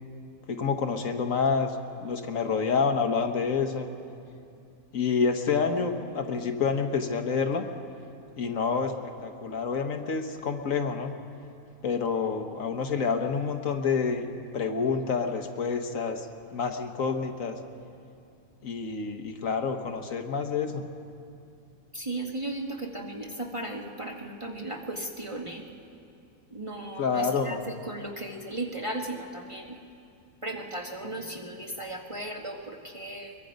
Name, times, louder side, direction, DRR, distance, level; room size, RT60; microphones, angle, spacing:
voice 1, 0.5-1.7 2.0-3.9 4.9-7.6 8.4-11.1 11.8-16.3 16.5-17.6 18.6-20.8 27.0-27.6, left 5 dB, 60° left, 5 dB, 1.3 m, -28 dB
voice 2, 21.9-25.6 26.5-29.8 30.4-33.4, right 1 dB, 20° right, 0 dB, 1.2 m, -36 dB
22.5 x 22.5 x 5.2 m, 2.5 s
omnidirectional pair, 1.6 m